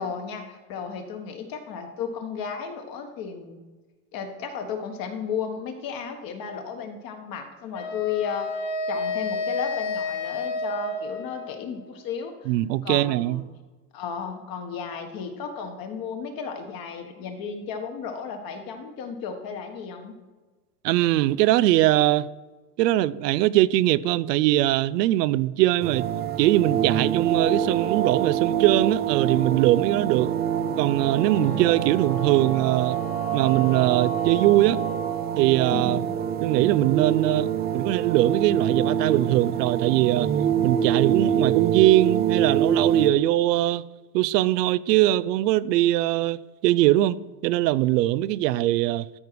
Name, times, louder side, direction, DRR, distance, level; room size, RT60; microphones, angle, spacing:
voice 1, 0.0-3.6 4.1-8.6 8.9-13.4 13.9-20.1 31.3-31.7 35.7-36.0, left 6 dB, 45° left, 1.6 m, -34 dB
Wind instrument woodwind instrument, 7.7-11.9, left 3 dB, 70° left, 1.9 m, -30 dB
voice 2, 12.5-13.4 20.8-22.3 22.8-26.1 26.4-30.3 30.8-33.0 33.3-34.8 35.4-36.0 36.4-40.3 40.6-43.8 44.1-47.2 47.4-49.1, right 15 dB, 90° right, 0.5 m, -21 dB
sound 1, 25.8-43.1, right 9 dB, 20° right, 0.5 m, -25 dB
Wind instrument woodwind instrument 2, 31.1-35.4, left 3 dB, 15° left, 0.8 m, -39 dB
13.5 x 4.8 x 4.7 m
supercardioid pair, 115°, 47 cm